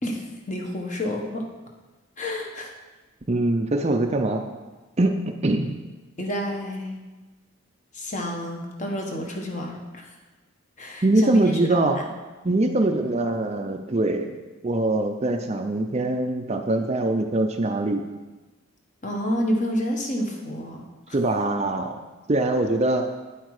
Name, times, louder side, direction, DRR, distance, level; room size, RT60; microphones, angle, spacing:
voice 1, 0.0-1.4 2.2-2.7 6.2-7.0 7.9-10.2 10.8-12.1 19.0-21.2, equal, 35° left, 1 dB, 1.3 m, -29 dB
voice 2, 3.3-4.5 5.0-5.7 11.0-12.0 12.4-14.3 14.6-18.0 21.1-21.9 22.3-23.0, right 2 dB, 30° right, 5 dB, 0.5 m, -23 dB
9.3 x 7.9 x 4.8 m, 1.2 s
head